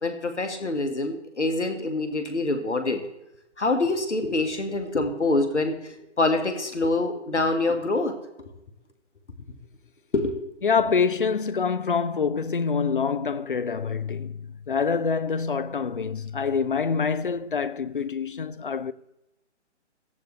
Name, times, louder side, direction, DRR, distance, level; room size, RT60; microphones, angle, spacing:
voice 1, 0.0-3.0 3.6-8.5 10.1-10.4, left 2 dB, 70° left, 1.8 m, -26 dB
voice 2, 10.6-18.9, left 5 dB, 45° left, 0.6 m, -26 dB
17.5 x 14.0 x 3.2 m
figure-of-eight pair, 140°, 36 cm